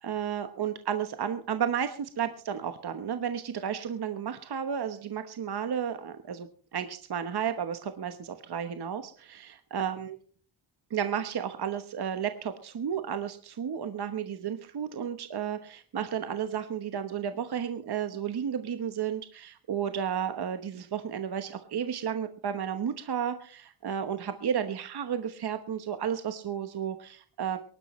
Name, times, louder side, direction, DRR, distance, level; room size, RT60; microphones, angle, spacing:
voice 1, 0.0-10.2 10.9-27.6, right 8 dB, 50° right, 9 dB, 1.1 m, -32 dB
23.5 x 11.5 x 3.1 m, 0.44 s
wide cardioid pair, 120°, 49 cm